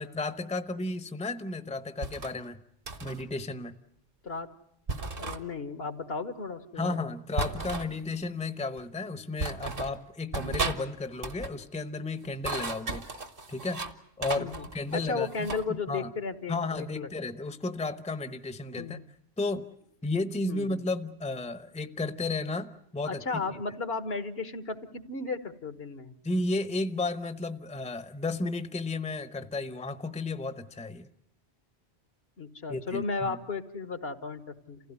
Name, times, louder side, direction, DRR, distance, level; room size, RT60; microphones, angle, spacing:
voice 1, 0.0-2.6 3.0-3.8 6.8-13.1 13.5-13.9 14.2-16.1 16.5-19.0 19.4-19.7 20.0-23.4 26.2-31.1 32.7-33.4, left 3 dB, 5° left, 12 dB, 0.8 m, -33 dB
sound 1, 2.0-2.3 2.9-3.2 4.9-5.4 7.4-7.9 8.8-8.9 9.4-10.0 10.3-10.8 11.1-11.6 12.2-13.9 14.2-15.7, right 3 dB, 60° right, 1.5 m, -34 dB
voice 2, 5.2-7.0 14.4-14.7 14.9-17.1 18.8-19.0 20.5-20.8 23.0-26.1 32.4-34.4 34.7-34.8, left 4 dB, 70° left, 10 dB, 1.6 m, -34 dB
28.5 x 16.0 x 9.5 m, 0.77 s
omnidirectional pair, 1.1 m